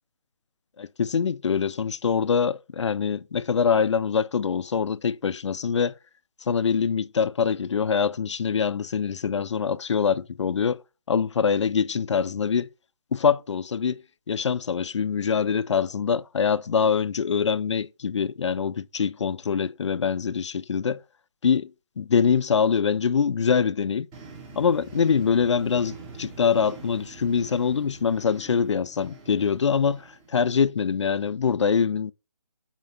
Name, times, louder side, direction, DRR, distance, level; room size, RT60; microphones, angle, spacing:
voice 1, 0.8-6.0 6.4-10.8 11.1-12.7 13.1-14.0 14.3-21.0 21.4-24.1 24.6-32.1, left 6 dB, 60° left, 0.4 m, -24 dB
sound 1, 24.1-30.5, right 4 dB, 15° right, 0.9 m, -45 dB
5.9 x 4.4 x 5.4 m
figure-of-eight pair, 160°, 17 cm